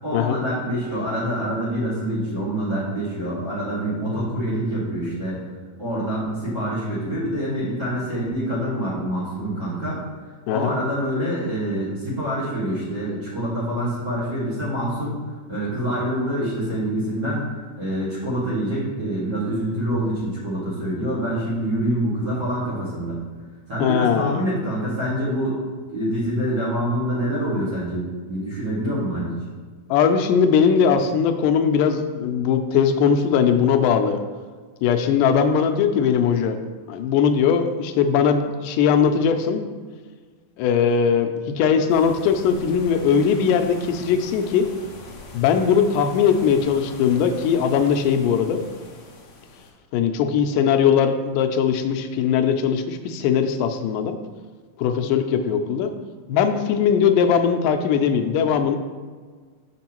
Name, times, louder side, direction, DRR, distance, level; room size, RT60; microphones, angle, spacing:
voice 1, 0.0-5.5 5.8-10.0 10.5-15.2 15.5-23.2 23.7-25.6 25.9-29.3, right 1 dB, 40° right, -9 dB, 1.9 m, -26 dB
voice 2, 10.5-10.8 23.8-24.4 29.9-34.2 34.8-36.6 36.9-39.7 40.6-44.7 45.3-48.6 49.9-54.2 54.8-55.9 56.3-58.8, left 7 dB, 90° left, 6 dB, 2.2 m, -20 dB
sound 1, 41.9-49.7, left 3 dB, 65° left, 1.7 m, -42 dB
6.4 x 6.0 x 2.9 m, 1.5 s
omnidirectional pair, 3.7 m